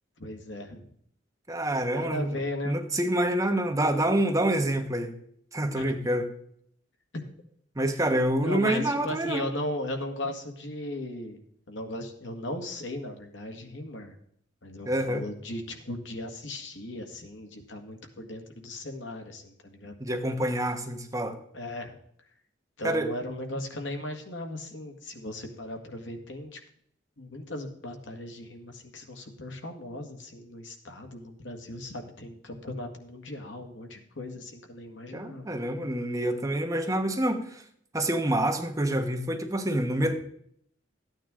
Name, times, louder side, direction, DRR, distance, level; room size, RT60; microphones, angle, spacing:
voice 1, 0.2-0.9 1.8-2.8 5.8-6.0 7.1-7.2 8.4-11.4 11.7-14.2 14.6-20.0 21.5-22.0 22.8-26.6 27.2-35.5, left 1 dB, 85° left, 5 dB, 1.8 m, -37 dB
voice 2, 1.5-5.1 5.5-6.3 7.7-9.5 14.9-15.3 20.0-21.4 22.8-23.1 35.1-37.6 37.9-40.1, right 1 dB, 20° right, 4 dB, 1.2 m, -27 dB
13.5 x 9.2 x 3.7 m, 0.68 s
head